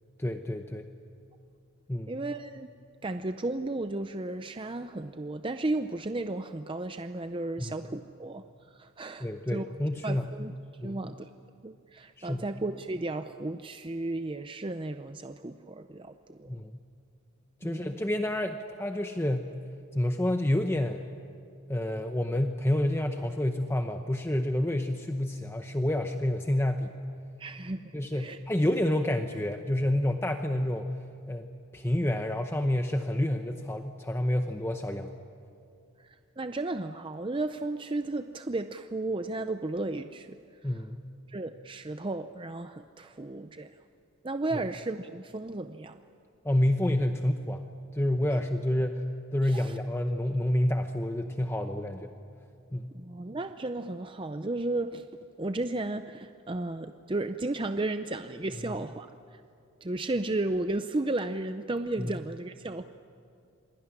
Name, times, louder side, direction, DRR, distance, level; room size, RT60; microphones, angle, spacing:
voice 1, 0.2-0.9 1.9-2.1 7.6-7.7 9.2-10.3 10.8-11.0 12.2-12.5 16.5-16.8 17.6-19.5 19.9-21.0 21.7-26.9 27.9-30.9 31.3-35.2 40.6-41.1 44.5-44.6 46.4-47.6 47.9-49.0 49.3-52.1 52.7-52.9 58.7-58.8 62.0-62.1, left 1 dB, 10° left, 5 dB, 0.8 m, -29 dB
voice 2, 2.1-2.7 3.0-9.7 10.0-10.5 10.8-11.3 11.6-16.5 17.6-18.0 27.4-28.4 36.0-40.4 40.6-40.7 41.3-43.7 44.2-46.0 49.4-49.8 52.9-55.1 55.4-59.4 59.8-62.8, right 2 dB, 25° right, 9 dB, 0.6 m, -34 dB
27.0 x 21.5 x 9.9 m, 2.4 s
head